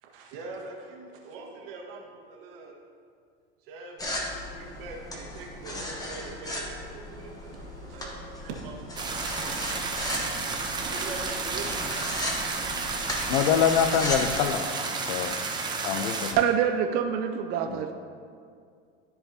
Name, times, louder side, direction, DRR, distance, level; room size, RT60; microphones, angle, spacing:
voice 1, 0.0-2.7 3.6-8.8 10.8-11.7 15.9-16.1, right 3 dB, 75° right, -1 dB, 1.7 m, -42 dB
sound 1, 4.0-14.3, left 1 dB, 10° left, 1.1 m, -36 dB
sound 2, 9.0-16.3, right 4 dB, 15° right, 0.7 m, -31 dB
voice 2, 13.3-14.7 15.0-15.3 15.8-16.3 17.7-17.8, left 8 dB, 65° left, 10 dB, 0.6 m, -24 dB
voice 3, 16.4-17.9, right 8 dB, 35° right, 5 dB, 0.4 m, -25 dB
13.5 x 4.8 x 2.8 m, 2.2 s
supercardioid pair, 135°, 29 cm